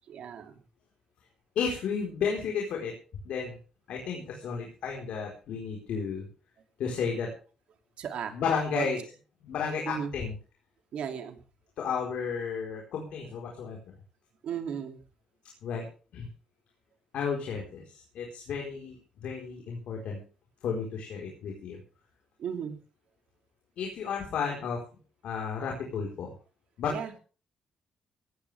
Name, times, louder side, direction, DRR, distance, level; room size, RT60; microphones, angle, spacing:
voice 1, 0.1-0.6 8.0-8.3 8.7-8.9 9.8-10.1 10.9-11.4 14.4-15.0 22.4-22.8 26.9-27.1, right 8 dB, 65° right, 6 dB, 2.7 m, -35 dB
voice 2, 1.5-2.9 3.2-3.6 3.9-6.3 6.8-7.3 8.3-9.0 9.4-10.3 11.8-13.9 15.6-15.9 16.1-16.3 17.1-20.2 20.6-21.8 23.8-24.8 25.2-26.3 26.8-27.0, left 6 dB, 75° left, 0 dB, 4.4 m, -32 dB
17.5 x 14.5 x 3.5 m, 0.36 s
cardioid pair, 140°, 2 cm